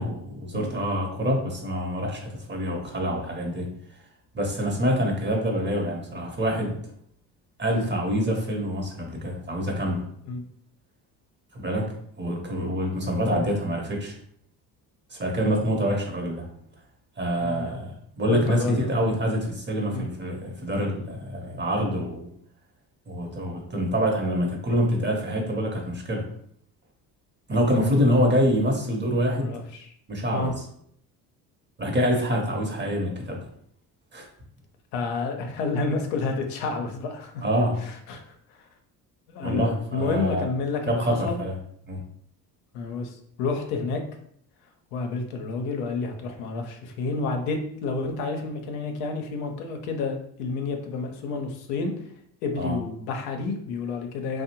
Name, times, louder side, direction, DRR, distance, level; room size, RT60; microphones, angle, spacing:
voice 1, 0.0-3.7 4.3-6.8 7.6-10.0 11.5-14.2 15.1-16.5 17.2-22.3 23.1-26.3 27.5-29.6 30.1-30.5 31.8-33.5 34.1-34.3 37.4-37.8 39.4-40.4 40.9-41.6 41.9-42.0 52.6-52.8, equal, 25° right, 1 dB, 0.8 m, -26 dB
voice 2, 17.4-17.8 18.3-18.9 19.9-20.1 27.7-28.2 29.3-29.9 30.3-30.5 34.9-37.4 37.8-38.2 38.5-38.7 39.3-41.4 42.7-44.0 44.9-51.9 52.4-54.4, left 4 dB, 70° left, 4 dB, 0.6 m, -30 dB
2.6 x 2.0 x 2.8 m, 0.66 s
hypercardioid pair, 55°, 48 cm